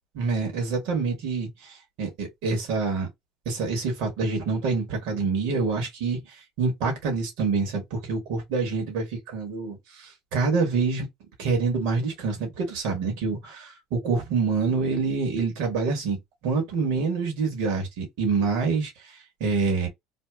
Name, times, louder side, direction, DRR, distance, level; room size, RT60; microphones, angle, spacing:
voice 1, 0.1-3.1 3.5-6.2 6.6-11.1 11.4-19.9, right 4 dB, 75° right, 2.1 m, -26 dB
3.5 x 2.5 x 3.5 m
supercardioid pair, 95°, 0 cm